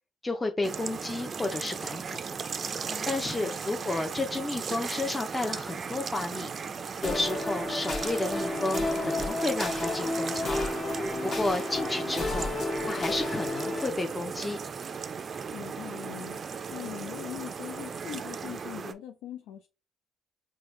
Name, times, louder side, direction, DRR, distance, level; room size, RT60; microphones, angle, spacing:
voice 1, 0.2-2.2 3.0-6.5 7.0-10.6 11.2-12.5 12.8-14.6, left 2 dB, 15° left, 0.5 m, -32 dB
sound 1, 0.6-18.9, right 6 dB, 45° right, 0.4 m, -36 dB
voice 2, 2.9-3.2 15.5-16.4 16.7-19.7, left 11 dB, 90° left, 0.4 m, -41 dB
sound 2, 7.0-13.9, left 2 dB, 50° left, 1.3 m, -31 dB
4.6 x 2.2 x 3.1 m
cardioid pair, 80°, 0 cm